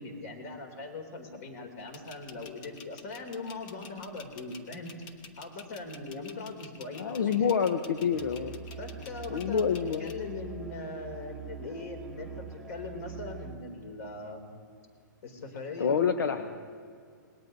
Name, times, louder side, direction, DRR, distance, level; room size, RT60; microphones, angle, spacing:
voice 1, 0.0-4.9 5.4-7.5 8.8-14.5 15.2-16.4, left 3 dB, 50° left, 5 dB, 2.7 m, -40 dB
sound 1, 1.8-10.1, left 5 dB, 35° left, 1.1 m, -49 dB
voice 2, 6.9-8.6 9.3-10.1 15.8-16.4, left 7 dB, 80° left, 8 dB, 0.8 m, -27 dB
Musical instrument, 8.1-13.6, right 6 dB, 5° right, 0.9 m, -44 dB
26.5 x 19.5 x 2.7 m, 2.1 s
hypercardioid pair, 155°, 11 cm